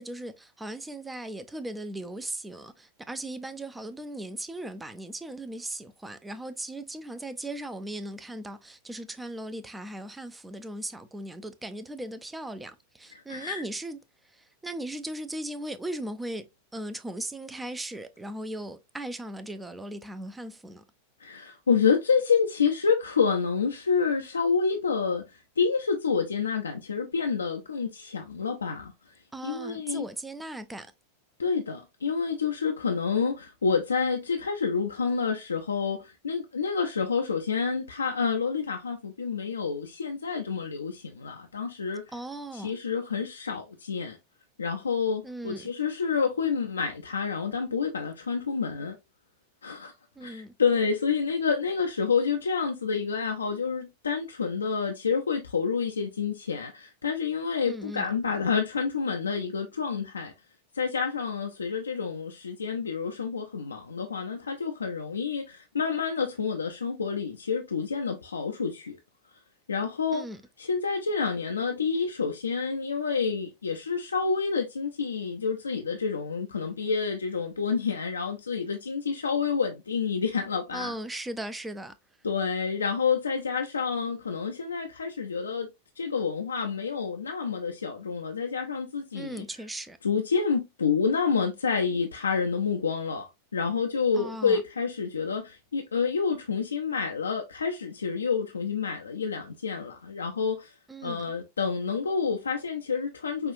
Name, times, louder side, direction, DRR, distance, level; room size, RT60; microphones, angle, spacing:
voice 1, 0.0-16.5 16.7-20.8 29.3-30.9 42.1-42.7 45.2-45.7 50.2-50.5 57.7-58.1 70.1-70.4 80.7-82.0 89.1-90.0 94.1-94.6 100.9-101.2, right 1 dB, 10° right, 0.5 m, -38 dB
voice 2, 13.1-13.6 21.2-28.9 29.4-30.0 31.4-42.0 42.5-44.2 44.6-49.0 49.6-49.9 50.2-60.3 60.7-69.0 69.7-70.2 70.6-80.9 82.2-85.7 86.0-89.4 90.0-100.7 101.0-103.5, left 5 dB, 75° left, 0.5 m, -28 dB
5.6 x 2.4 x 2.6 m
figure-of-eight pair, 90°, 0 cm